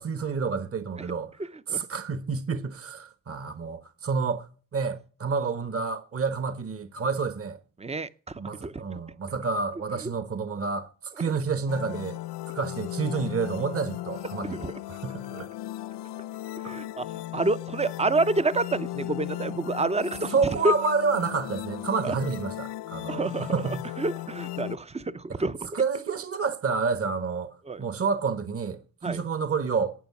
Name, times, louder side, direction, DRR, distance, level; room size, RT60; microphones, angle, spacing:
voice 1, 0.0-1.3 1.7-7.6 8.4-12.2 12.5-15.5 16.6-16.8 20.3-23.9 25.7-29.9, right 4 dB, 35° right, 1.3 m, -29 dB
voice 2, 7.8-8.3 8.6-8.8 14.6-14.7 16.6-17.1 17.3-20.4 20.6-20.7 22.0-22.2 23.1-23.5 24.0-25.6 27.7-27.8 29.0-29.2, right 3 dB, 15° right, 0.7 m, -28 dB
sound 1, 11.7-24.8, left 15 dB, 85° left, 0.6 m, -37 dB
12.5 x 9.1 x 6.1 m
cardioid pair, 125°, 39 cm